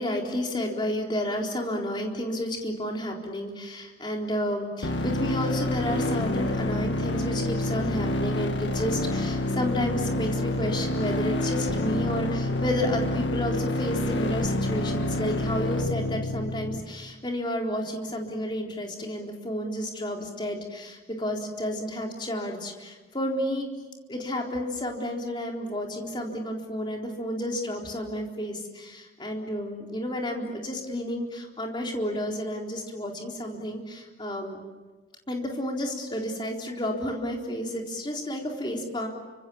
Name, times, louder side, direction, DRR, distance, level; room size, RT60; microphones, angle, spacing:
voice 1, 0.0-23.7 24.1-34.6 35.3-39.1, left 1 dB, 25° left, 0 dB, 4.0 m, -31 dB
sound 1, 4.8-16.8, left 1 dB, 80° left, 2.1 m, -28 dB
30.0 x 25.5 x 7.2 m, 1.2 s
head